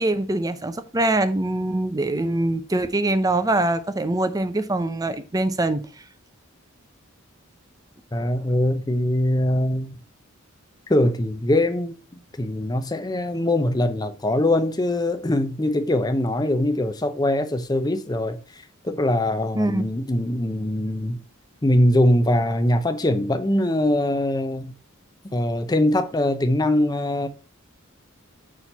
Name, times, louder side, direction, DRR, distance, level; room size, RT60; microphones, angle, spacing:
voice 1, 0.0-5.8 19.6-19.8, right 2 dB, 15° right, 0.6 m, -23 dB
voice 2, 8.1-10.0 10.9-12.0 12.4-21.2 21.6-24.7 25.3-27.3, left 1 dB, 20° left, 0.7 m, -22 dB
6.3 x 4.4 x 5.4 m
head